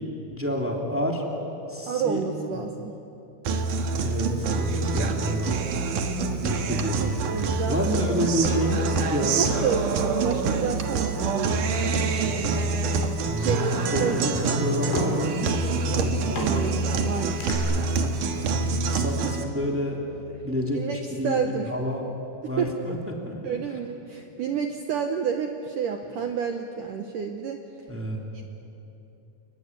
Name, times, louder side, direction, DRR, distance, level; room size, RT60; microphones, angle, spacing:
voice 1, 0.3-1.2 1.7-2.2 2.5-2.7 4.0-5.6 6.4-9.6 13.2-14.3 14.6-16.6 18.6-20.0 20.4-21.4 21.7-22.0 22.4-23.0 23.3-23.6 27.9-28.4, equal, 5° right, 0 dB, 2.0 m, -29 dB
voice 2, 1.9-2.9 5.0-5.2 7.3-7.8 9.3-12.8 13.4-14.2 15.9-17.6 18.7-18.9 20.7-21.7 22.4-22.7 23.4-27.6 28.3-28.4, right 7 dB, 75° right, 5 dB, 1.9 m, -30 dB
Guitar, 3.4-19.4, right 4 dB, 60° right, 2.3 m, -26 dB
Sliding door, 7.5-10.8 11.1-11.2 12.2-12.4 12.8-17.5, left 2 dB, 80° left, 6.1 m, -39 dB
29.5 x 20.0 x 9.7 m, 2.9 s
omnidirectional pair, 5.3 m